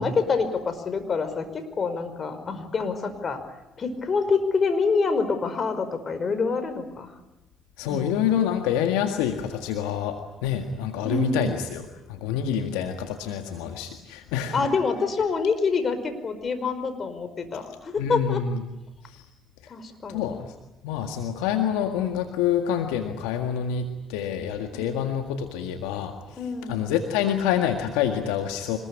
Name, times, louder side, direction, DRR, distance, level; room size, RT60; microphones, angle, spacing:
voice 1, 0.0-3.4 3.8-7.1 7.8-8.2 11.0-11.5 14.5-18.4 19.7-20.3 24.7-25.0 26.4-26.9, left 4 dB, 45° left, 9 dB, 5.2 m, -26 dB
voice 2, 7.8-10.2 10.4-14.7 18.0-18.6 19.1-19.2 20.1-20.5 20.8-26.1 26.7-28.8, left 9 dB, 80° left, 5 dB, 1.8 m, -27 dB
25.5 x 21.0 x 9.9 m, 0.99 s
hypercardioid pair, 55°, 0 cm